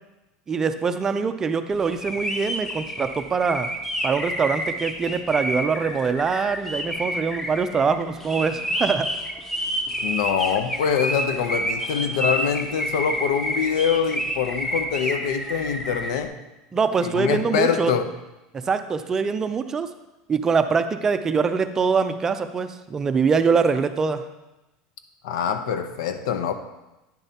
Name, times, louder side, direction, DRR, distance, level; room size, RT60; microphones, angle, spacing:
voice 1, 0.5-3.7 4.0-9.1 16.7-17.9 18.6-19.9 20.3-24.2, right 5 dB, 15° right, 9 dB, 0.4 m, -23 dB
sound 1, 1.9-16.1, equal, 10° left, 0.7 m, -29 dB
voice 2, 10.0-16.4 17.0-18.1 25.2-26.5, left 7 dB, 85° left, 9 dB, 0.7 m, -24 dB
9.8 x 6.9 x 2.8 m, 1.0 s
supercardioid pair, 160°, 3 cm